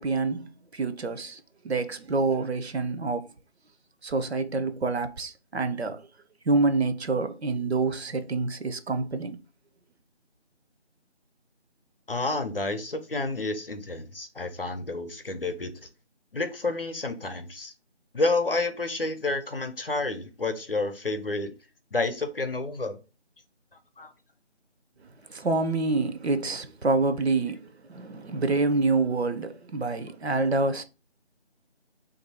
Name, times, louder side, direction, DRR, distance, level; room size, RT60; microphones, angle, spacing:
voice 1, 0.0-3.3 4.0-6.1 6.5-9.4 25.3-30.8, right 3 dB, 65° right, 0.6 m, -27 dB
voice 2, 12.1-15.9 16.3-17.7 18.1-21.5 21.9-23.0 24.0-24.1, left 2 dB, 55° left, 0.7 m, -30 dB
2.7 x 2.6 x 4.1 m
figure-of-eight pair, 175°, 35 cm